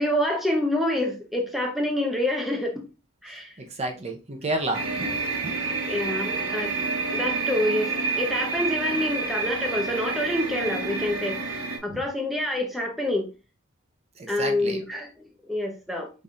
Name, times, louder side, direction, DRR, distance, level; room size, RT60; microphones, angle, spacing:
voice 1, 0.0-2.7 3.2-3.5 5.9-6.7 7.1-7.9 8.2-13.3 14.3-16.1, left 1 dB, ahead, 1 dB, 0.7 m, -27 dB
voice 2, 3.6-5.5 11.9-12.0 14.2-14.8, right 2 dB, 30° right, 3 dB, 0.8 m, -31 dB
sound 1, 4.7-11.8, right 4 dB, 85° right, 1.2 m, -28 dB
5.4 x 4.1 x 2.4 m, 0.33 s
head